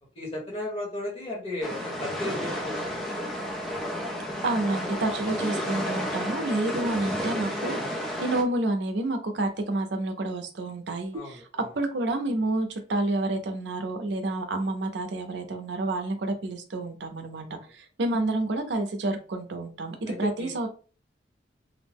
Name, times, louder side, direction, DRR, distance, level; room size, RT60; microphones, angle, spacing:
voice 1, 0.1-3.3 11.1-11.7 20.1-20.6, left 1 dB, 30° left, -3 dB, 1.1 m, -35 dB
sound 1, 1.6-8.4, equal, ahead, 0.4 m, -32 dB
voice 2, 4.4-7.8 8.2-11.4 11.7-20.7, right 2 dB, 75° right, 5 dB, 0.5 m, -29 dB
2.5 x 2.1 x 3.3 m, 0.37 s
head